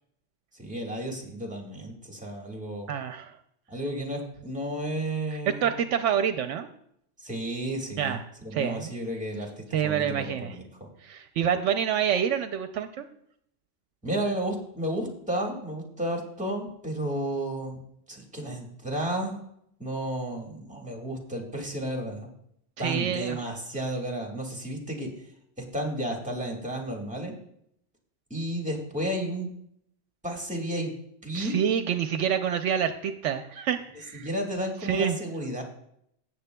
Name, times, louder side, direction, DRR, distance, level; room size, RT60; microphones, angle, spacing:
voice 1, 0.5-2.9 3.7-5.8 7.2-10.9 14.0-17.8 18.1-19.4 19.8-22.3 22.8-25.1 25.6-27.3 28.3-29.5 30.2-30.9 31.2-31.6 34.1-35.6, right 1 dB, 5° right, 0 dB, 1.6 m, -32 dB
voice 2, 2.9-3.3 5.5-6.7 8.0-8.2 8.5-8.9 9.7-10.6 11.0-13.1 22.8-23.4 31.3-34.3 34.9-35.2, right 8 dB, 75° right, 9 dB, 0.9 m, -27 dB
16.5 x 7.3 x 2.2 m, 0.73 s
omnidirectional pair, 1.3 m